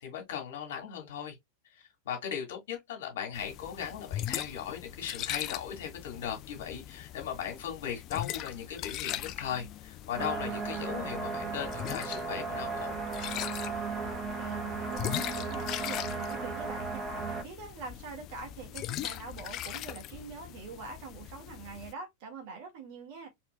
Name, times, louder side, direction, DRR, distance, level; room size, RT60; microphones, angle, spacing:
voice 1, 0.0-1.3 2.1-13.0, left 8 dB, 55° left, 2.0 m, -38 dB
sound 1, 3.3-21.9, left 13 dB, 35° left, 0.3 m, -40 dB
sound 2, 10.2-17.4, right 4 dB, 20° right, 1.4 m, -36 dB
voice 2, 14.0-23.3, right 5 dB, 45° right, 1.8 m, -44 dB
4.4 x 3.7 x 2.2 m
figure-of-eight pair, 90°, 0 cm